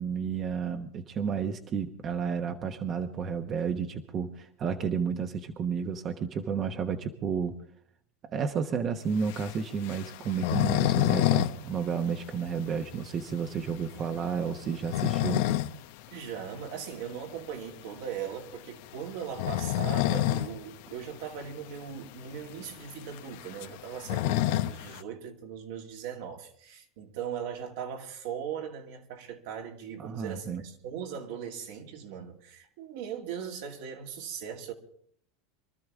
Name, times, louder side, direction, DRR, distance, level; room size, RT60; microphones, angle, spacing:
voice 1, 0.0-7.5 8.2-15.4 30.0-30.6, right 6 dB, 35° right, 1.1 m, -32 dB
sound 1, 9.2-11.6 11.8-11.9 12.3-12.4 12.9-13.0 14.6-15.8 16.2-16.3 17.8-18.0 19.2-20.5 20.9-21.0 21.2-21.3 22.1-22.2 22.4-25.0, left 14 dB, 70° left, 0.8 m, -27 dB
voice 2, 13.7-14.1 16.1-34.7, right 8 dB, 70° right, 2.5 m, -39 dB
24.0 x 12.5 x 3.6 m
supercardioid pair, 125°, 0 cm